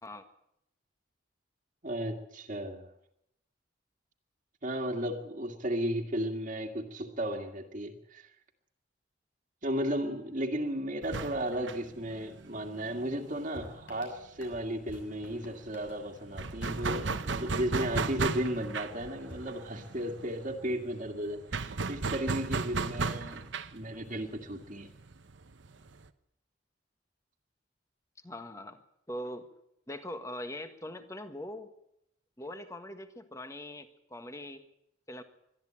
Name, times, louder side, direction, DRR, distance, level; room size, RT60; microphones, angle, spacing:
voice 1, 1.8-2.9 4.6-8.3 9.6-23.4 23.7-24.9, equal, 40° right, 3 dB, 2.0 m, -34 dB
sound 1, 11.0-14.4 14.7-14.8 15.1-26.1, right 4 dB, 75° right, 1.0 m, -36 dB
sound 2, 13.5-18.4 19.0-20.2, left 1 dB, 80° left, 6.8 m, -52 dB
voice 2, 28.2-28.8 29.1-29.5 29.9-31.7 32.4-34.7 35.1-35.2, left 1 dB, 15° left, 8 dB, 1.5 m, -42 dB
22.5 x 13.5 x 8.8 m, 0.79 s
head